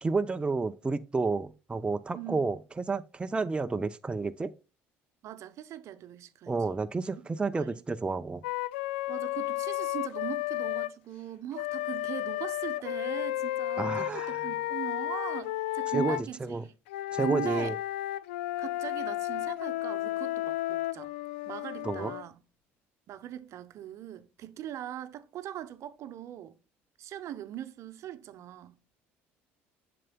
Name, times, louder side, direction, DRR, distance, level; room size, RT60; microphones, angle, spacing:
voice 1, 0.0-4.5 6.5-8.4 13.8-14.5 15.9-16.6 17.1-17.8 21.8-22.1, right 3 dB, 15° right, 0.6 m, -31 dB
voice 2, 2.1-2.5 5.2-6.5 7.5-7.8 9.1-16.7 17.2-17.7 18.6-21.1 21.4-22.4 23.1-26.5 27.0-28.8, right 11 dB, 60° right, 0.8 m, -40 dB
Wind instrument woodwind instrument, 8.4-10.9 11.5-16.3 16.9-22.2, left 15 dB, 90° left, 0.3 m, -33 dB
7.5 x 6.8 x 2.2 m
supercardioid pair, 70°, 6 cm